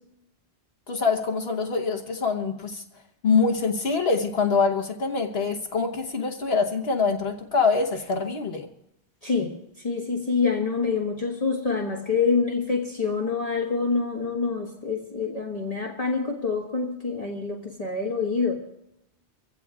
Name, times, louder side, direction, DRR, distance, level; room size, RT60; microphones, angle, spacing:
voice 1, 0.9-2.8 3.2-8.7, left 4 dB, 60° left, 3 dB, 1.3 m, -24 dB
voice 2, 9.2-18.6, left 4 dB, 35° left, -1 dB, 1.5 m, -26 dB
25.5 x 16.0 x 2.3 m, 0.84 s
omnidirectional pair, 1.2 m